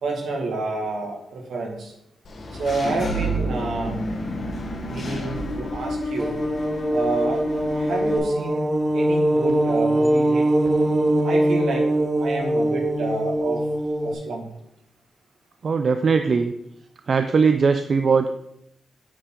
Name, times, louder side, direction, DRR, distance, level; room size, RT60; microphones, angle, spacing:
voice 1, 0.0-1.9 2.5-4.0 4.9-6.4 6.9-7.4 7.7-8.6 8.9-10.7 11.2-11.8 12.2-13.6 14.0-14.5, right 3 dB, 75° right, 0 dB, 1.9 m, -29 dB
Engine / Mechanisms, 2.2-8.2, equal, 50° left, 1.2 m, -29 dB
sound 1, 6.2-14.1, right 1 dB, 20° right, 0.9 m, -22 dB
voice 2, 15.6-16.5 17.1-18.3, right 5 dB, 50° right, 7 dB, 0.4 m, -19 dB
9.0 x 4.4 x 3.8 m, 0.81 s
cardioid pair, 90°, 0 cm